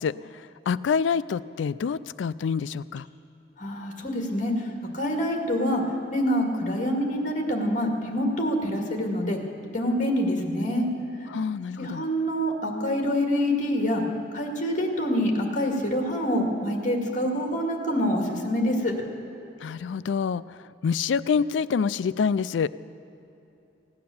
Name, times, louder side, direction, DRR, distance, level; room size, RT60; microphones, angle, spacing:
voice 1, 0.0-3.1 11.3-12.0 19.6-22.7, left 6 dB, 90° left, 17 dB, 0.3 m, -27 dB
voice 2, 3.6-5.8 6.1-9.4 9.7-10.9 11.8-14.0 14.3-18.9, equal, 45° left, 2 dB, 2.0 m, -26 dB
16.5 x 9.6 x 7.0 m, 2.9 s
head